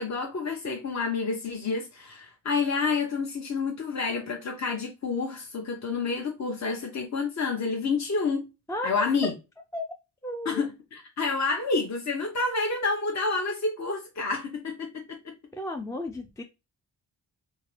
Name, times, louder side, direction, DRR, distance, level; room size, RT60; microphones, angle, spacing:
voice 1, 0.0-8.4 8.8-9.3 10.4-15.2, left 4 dB, 40° left, 0.8 m, -29 dB
voice 2, 10.2-10.6 15.5-16.4, left 1 dB, 10° left, 0.3 m, -33 dB
2.7 x 2.6 x 3.1 m
supercardioid pair, 45°, 45 cm